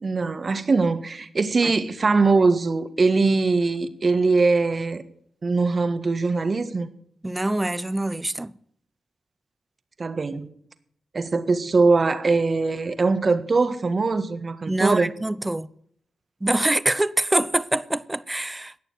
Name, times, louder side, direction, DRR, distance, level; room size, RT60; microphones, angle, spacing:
voice 1, 0.0-5.0 5.4-6.9 10.0-10.5 11.1-15.1, right 3 dB, 45° right, 1.6 m, -21 dB
voice 2, 7.2-8.5 14.7-15.7 16.4-18.7, right 1 dB, 20° right, 0.8 m, -24 dB
19.0 x 6.9 x 8.2 m
supercardioid pair, 45°, 0 cm